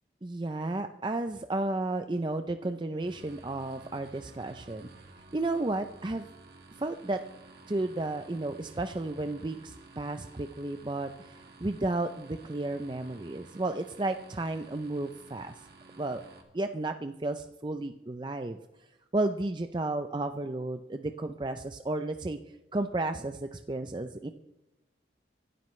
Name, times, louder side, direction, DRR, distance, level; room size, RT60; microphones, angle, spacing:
voice 1, 0.2-4.9 5.3-6.3 6.8-7.2 7.7-15.5 16.0-16.2 16.5-18.6 19.1-22.4 22.7-24.3, right 2 dB, 25° right, 7 dB, 0.5 m, -33 dB
sound 1, 3.0-16.4, right 3 dB, 60° right, 2.3 m, -53 dB
25.5 x 12.0 x 3.2 m, 0.97 s
head